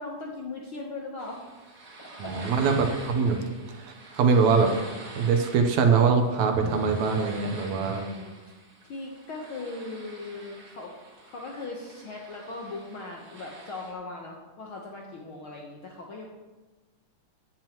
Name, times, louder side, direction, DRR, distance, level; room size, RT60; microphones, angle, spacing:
voice 1, 0.0-1.4 2.0-2.3 2.6-2.8 7.7-10.9 11.2-16.2, left 3 dB, 65° left, -1 dB, 1.3 m, -39 dB
sound 1, 1.2-13.9, right 2 dB, 40° right, 1.7 m, -46 dB
voice 2, 2.2-3.4 3.7-4.8 5.2-8.0, right 5 dB, 70° right, 5 dB, 2.1 m, -23 dB
15.0 x 9.1 x 3.0 m, 1.2 s
omnidirectional pair, 3.5 m